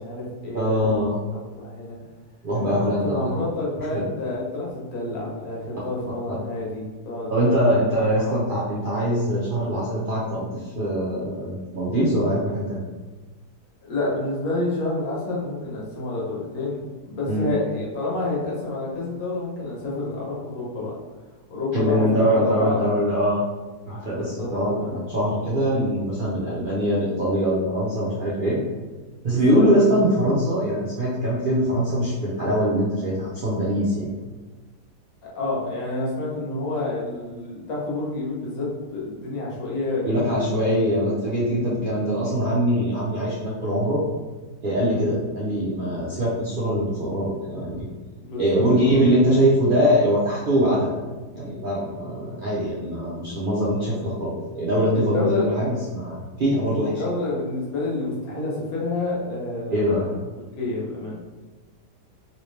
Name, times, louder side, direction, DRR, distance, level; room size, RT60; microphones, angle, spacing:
voice 1, 0.0-1.1 1.3-2.0 2.5-8.3 13.8-20.9 21.5-22.8 24.1-24.5 24.8-24.9 29.2-29.6 35.3-40.3 44.9-45.1 48.2-49.0 54.9-55.5 56.8-60.2 60.6-61.2, left 2 dB, 60° left, -5 dB, 1.4 m, -29 dB
voice 2, 0.5-1.2 2.4-3.3 3.9-4.0 6.3-6.4 7.3-12.8 17.3-17.5 21.7-23.4 23.9-28.6 29.2-34.1 40.1-44.0 44.6-47.9 48.4-51.0 51.3-57.0 59.7-60.1, equal, 85° right, -7 dB, 0.4 m, -22 dB
3.1 x 2.9 x 3.1 m, 1.3 s
omnidirectional pair, 1.8 m